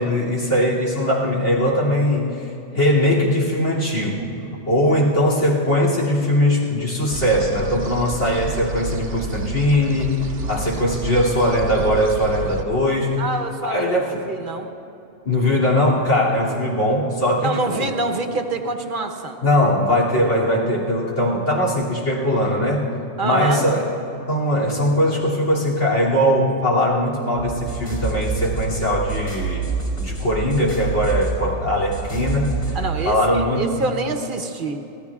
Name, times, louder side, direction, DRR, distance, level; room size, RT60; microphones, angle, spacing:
voice 1, 0.0-2.3 2.7-4.3 4.7-10.2 10.5-13.2 13.6-14.3 15.2-17.9 19.4-22.9 23.2-23.9 24.3-32.8 33.0-33.7, left 1 dB, 70° left, -4 dB, 3.1 m, -20 dB
sound 1, 7.1-12.6, right 3 dB, 75° right, 1.1 m, -30 dB
voice 2, 13.2-14.7 17.4-19.4 23.2-23.6 32.7-34.8, right 3 dB, 45° right, 5 dB, 1.1 m, -26 dB
sound 2, 27.4-33.0, right 5 dB, 50° left, 3.7 m, -27 dB
27.0 x 17.0 x 2.4 m, 2.9 s
omnidirectional pair, 1.3 m